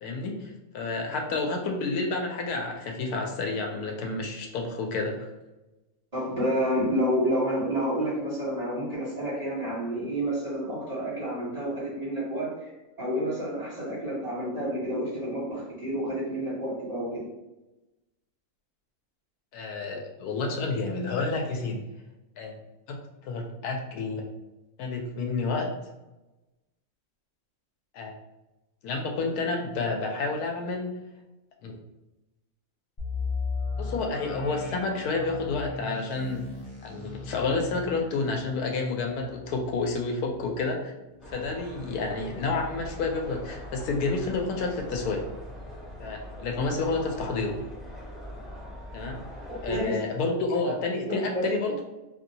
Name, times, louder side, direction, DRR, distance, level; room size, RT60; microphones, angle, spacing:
voice 1, 0.0-5.3 19.5-21.9 22.4-22.5 22.9-23.0 23.2-24.2 24.8-25.7 27.9-28.1 28.8-30.9 31.6-31.8 33.8-36.5 36.8-40.9 41.3-45.3 46.0-47.6 48.9-49.2 49.6-51.8, left 3 dB, 85° left, 2 dB, 1.1 m, -30 dB
voice 2, 6.1-12.7 13.0-17.3 49.7-50.0 50.6-50.7 51.1-51.2 51.7-51.8, equal, 25° right, -9 dB, 1.3 m, -29 dB
sound 1, 33.0-42.7 43.0-43.1 43.7-43.9, left 4 dB, 40° left, 0.4 m, -38 dB
sound 2, 41.2-49.9, equal, ahead, 0.7 m, -42 dB
3.0 x 2.6 x 2.7 m, 1.0 s
omnidirectional pair, 1.6 m